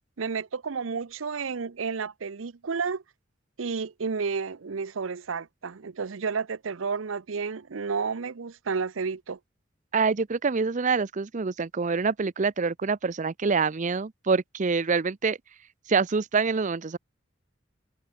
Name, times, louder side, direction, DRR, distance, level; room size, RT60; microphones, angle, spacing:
voice 1, 0.2-3.0 3.6-9.4, right 5 dB, 85° right, 0.7 m, -31 dB
voice 2, 9.9-15.4 15.9-17.0, right 4 dB, 40° right, 0.6 m, -26 dB
head